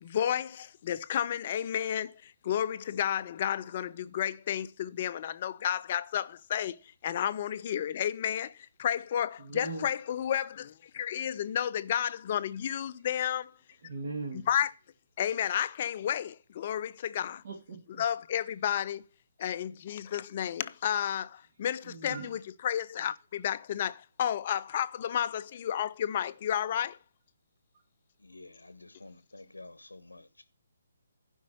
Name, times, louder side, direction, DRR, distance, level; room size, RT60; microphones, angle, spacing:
voice 1, 0.0-13.5 14.5-14.7 15.2-17.4 18.0-19.0 19.4-27.0, left 10 dB, 35° left, 0.5 m, -32 dB
voice 2, 9.4-9.9 13.1-13.2 13.8-14.5 17.4-18.0 21.8-22.3, right 3 dB, 45° right, 2.2 m, -39 dB
voice 3, 28.2-30.4, left 2 dB, 75° left, 0.8 m, -50 dB
11.5 x 5.3 x 5.9 m
figure-of-eight pair, 140°, 0 cm